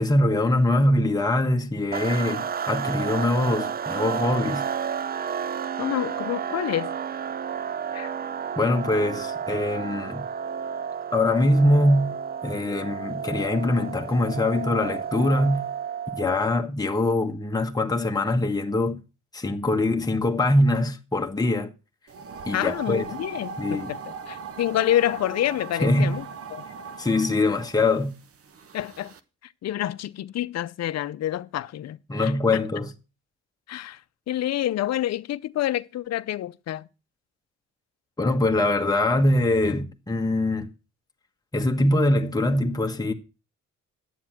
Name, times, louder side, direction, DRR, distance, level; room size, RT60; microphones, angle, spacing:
voice 1, 0.0-4.7 8.6-10.2 11.1-12.2 12.4-15.7 16.1-19.0 19.3-21.7 22.4-23.0 23.6-23.9 25.8-26.2 27.0-28.1 32.1-32.9 38.2-40.7 41.5-43.1, left 1 dB, 10° left, 1.4 m, -23 dB
sound 1, 1.9-16.5, right 7 dB, 30° right, 0.5 m, -31 dB
voice 2, 5.8-6.9 7.9-8.1 22.5-26.2 26.5-26.6 28.7-29.1 29.4-32.6 33.7-34.0 34.3-36.9, left 12 dB, 60° left, 0.7 m, -28 dB
sound 2, 22.1-29.2, right 5 dB, 50° right, 1.1 m, -39 dB
10.0 x 7.3 x 6.0 m
cardioid pair, 90°, 30 cm